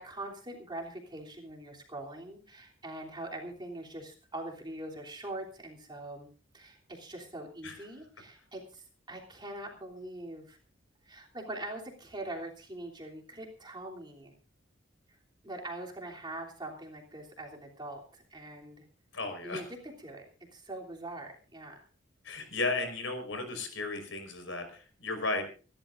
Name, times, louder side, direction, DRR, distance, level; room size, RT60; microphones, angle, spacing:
voice 1, 0.0-6.3 6.5-10.6 11.0-14.3 15.4-18.8 19.4-21.9, right 1 dB, 25° right, -1 dB, 3.1 m, -43 dB
voice 2, 19.1-19.6 22.2-25.5, left 3 dB, 80° left, 6 dB, 4.9 m, -34 dB
27.0 x 12.0 x 2.6 m, 0.36 s
head